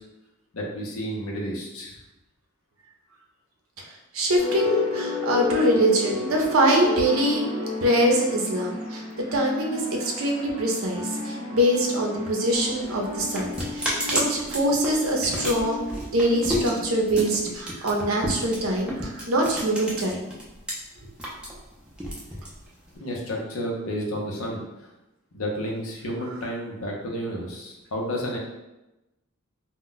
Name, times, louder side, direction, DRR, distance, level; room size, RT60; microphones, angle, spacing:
voice 1, 0.5-2.0 22.9-24.6 25.3-28.4, equal, 75° left, -1 dB, 0.6 m, -31 dB
voice 2, 4.1-7.5 7.8-9.0 9.3-15.8 16.1-20.3, right 1 dB, 75° right, 0 dB, 0.6 m, -24 dB
sound 1, 4.4-17.7, left 3 dB, 35° left, 0.8 m, -33 dB
sound 2, 12.6-20.7 21.0-23.0, equal, 5° right, 0.4 m, -31 dB
2.1 x 2.1 x 3.8 m, 0.99 s
head